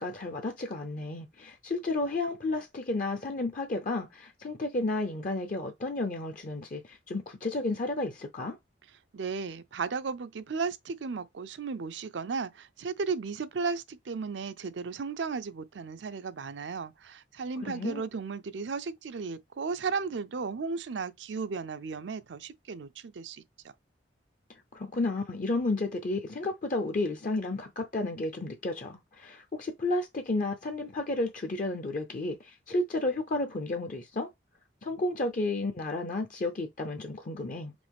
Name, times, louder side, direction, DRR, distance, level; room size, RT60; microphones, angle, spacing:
voice 1, 0.0-8.6 17.6-18.0 24.7-34.3 34.8-37.7, left 2 dB, 45° left, 0.6 m, -32 dB
voice 2, 9.1-23.4, right 5 dB, 75° right, 0.5 m, -35 dB
5.2 x 3.0 x 3.4 m
head